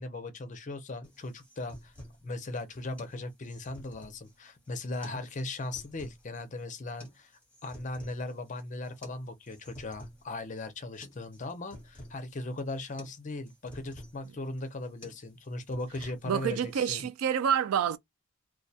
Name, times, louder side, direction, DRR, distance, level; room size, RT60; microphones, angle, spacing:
voice 1, 0.0-1.9 2.2-7.3 7.6-17.1, left 2 dB, 35° left, 0.5 m, -38 dB
sound 1, 1.0-17.0, equal, 5° left, 0.9 m, -52 dB
voice 2, 16.3-18.0, right 8 dB, 75° right, 0.3 m, -28 dB
2.2 x 2.1 x 2.6 m
head